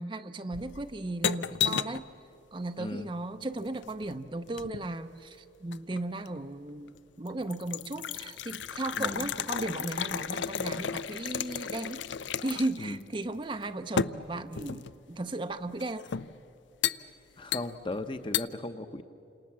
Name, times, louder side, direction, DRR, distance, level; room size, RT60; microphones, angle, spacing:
voice 1, 0.0-2.0 2.5-12.0 12.4-16.1, right 2 dB, 25° right, 9 dB, 0.6 m, -36 dB
sound 1, 0.5-2.1 3.5-4.9 5.7-6.4 6.9-7.0 7.3-12.9 13.1-13.2 14.0-15.0 15.8-16.3 16.8-17.0 17.5-18.0 18.3-18.5, left 7 dB, 75° left, 0.5 m, -33 dB
voice 2, 2.8-3.1 9.0-9.3 12.8-13.0 17.4-19.0, left 2 dB, 25° left, 9 dB, 0.8 m, -37 dB
29.0 x 27.0 x 7.4 m, 3.0 s
head